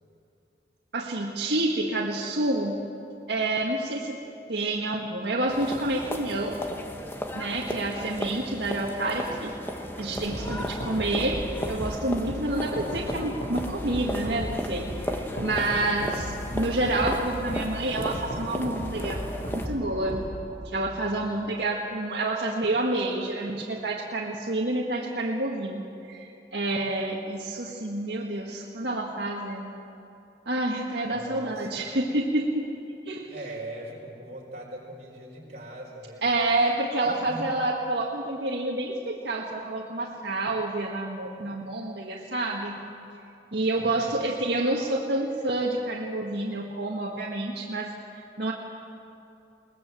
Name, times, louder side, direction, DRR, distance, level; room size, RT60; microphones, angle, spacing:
voice 1, 0.9-2.8 3.3-4.2 4.5-6.6 7.3-9.6 10.0-11.4 11.7-20.2 20.6-25.8 26.1-29.7 30.4-32.7 33.0-33.3 36.2-42.8 43.5-47.9 48.4-48.5, right 2 dB, 80° right, -2 dB, 1.8 m, -28 dB
sound 1, 5.5-19.7, equal, 15° left, 1.2 m, -36 dB
sound 2, 10.2-20.6, equal, 50° left, 7.1 m, -36 dB
voice 2, 10.3-10.8 21.0-21.5 31.1-31.8 33.3-36.2 37.0-37.5 43.7-44.1, right 1 dB, 40° right, -3 dB, 5.3 m, -41 dB
21.5 x 20.0 x 7.6 m, 2.7 s
head